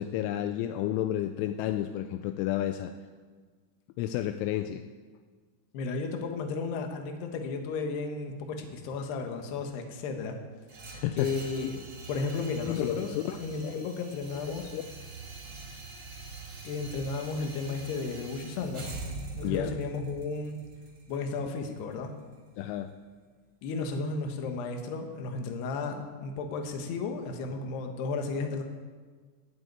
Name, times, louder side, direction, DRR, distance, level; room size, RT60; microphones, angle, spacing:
voice 1, 0.0-2.9 4.0-4.8 10.9-11.3 12.7-13.4 13.6-13.9 14.5-14.8 19.4-19.7 22.6-22.9, left 12 dB, 85° left, 7 dB, 2.8 m, -31 dB
voice 2, 5.7-10.4 11.1-11.8 12.1-14.7 16.6-18.9 19.3-20.6 21.1-22.1 23.6-28.6, left 4 dB, 65° left, 4 dB, 3.0 m, -34 dB
sound 1, 10.7-22.7, right 3 dB, 55° right, 1.6 m, -44 dB
17.5 x 7.5 x 8.9 m, 1.5 s
omnidirectional pair, 6.0 m